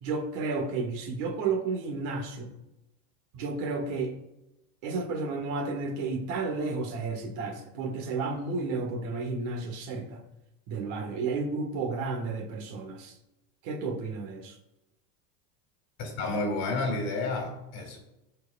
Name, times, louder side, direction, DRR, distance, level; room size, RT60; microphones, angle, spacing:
voice 1, 0.0-2.5 3.3-4.2 4.8-10.2 10.7-13.1 13.6-14.6, right 4 dB, 45° right, 4 dB, 1.4 m, -32 dB
voice 2, 16.0-18.0, left 2 dB, 40° left, 2 dB, 2.2 m, -30 dB
14.0 x 4.6 x 2.3 m, 0.93 s
supercardioid pair, 165°, 42 cm